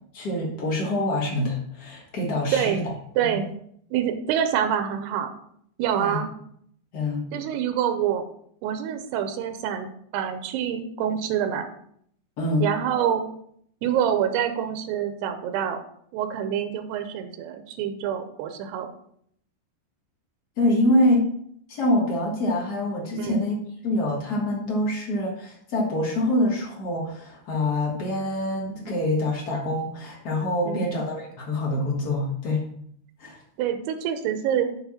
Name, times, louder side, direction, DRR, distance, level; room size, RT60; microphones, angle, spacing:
voice 1, 0.1-2.9 3.2-3.4 5.9-6.2 6.9-7.2 12.4-12.6 20.6-21.2 21.7-23.5 23.8-32.6 33.2-33.4, left 1 dB, 75° left, -3 dB, 0.9 m, -25 dB
voice 2, 3.2-3.5 3.9-5.3 5.8-6.3 7.3-8.3 8.6-11.7 12.6-13.2 13.8-15.8 16.1-18.9 23.2-23.4 30.7-30.9 33.6-34.7, right 9 dB, 85° right, 8 dB, 2.8 m, -26 dB
8.1 x 4.2 x 5.7 m, 0.67 s
omnidirectional pair, 4.6 m